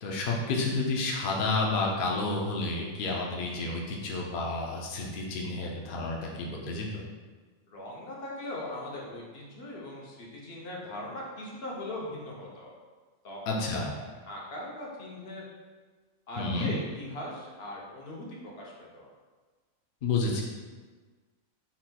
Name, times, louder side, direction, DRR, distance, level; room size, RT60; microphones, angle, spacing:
voice 1, 0.0-7.0 13.5-13.9 16.4-16.7 20.0-20.4, left 3 dB, 65° left, -2 dB, 0.5 m, -30 dB
voice 2, 7.7-12.7 13.2-13.4 13.7-13.8 14.3-15.4 16.3-19.1, left 1 dB, 50° left, -3 dB, 0.9 m, -40 dB
4.3 x 4.1 x 2.2 m, 1.4 s
omnidirectional pair, 1.5 m